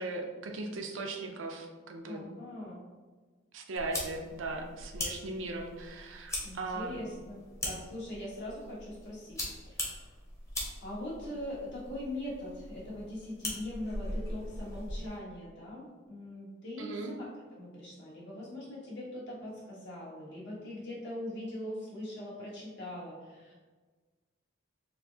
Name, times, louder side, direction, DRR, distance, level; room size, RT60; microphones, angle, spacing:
voice 1, 0.0-2.2 3.5-7.1 16.8-17.1, right 2 dB, 75° right, 2 dB, 0.5 m, -38 dB
voice 2, 2.1-2.8 6.4-10.1 10.8-23.5, left 1 dB, 60° left, -6 dB, 1.3 m, -41 dB
sound 1, 3.8-15.2, left 1 dB, 15° left, 0.8 m, -41 dB
4.2 x 2.7 x 2.8 m, 1.4 s
head